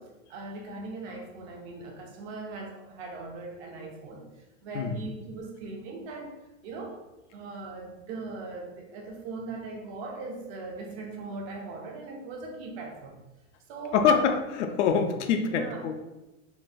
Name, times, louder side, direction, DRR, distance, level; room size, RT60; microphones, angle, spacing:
voice 1, 0.0-4.3 4.6-7.0 7.3-13.2 13.7-14.4 15.4-16.0, right 3 dB, 50° right, 1 dB, 0.8 m, -39 dB
voice 2, 13.9-16.0, left 6 dB, 65° left, 7 dB, 0.5 m, -25 dB
3.7 x 2.2 x 2.6 m, 1.0 s
hypercardioid pair, 125°, 38 cm